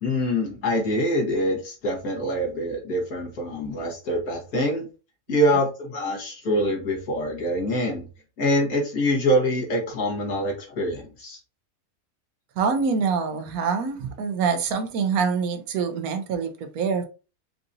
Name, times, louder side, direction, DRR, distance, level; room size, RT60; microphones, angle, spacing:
voice 1, 0.0-4.9 5.3-8.1 8.4-11.4, equal, 75° left, 1.8 m, -25 dB
voice 2, 12.6-17.0, right 5 dB, 80° right, 1.1 m, -25 dB
4.7 x 2.6 x 2.6 m
omnidirectional pair, 1.5 m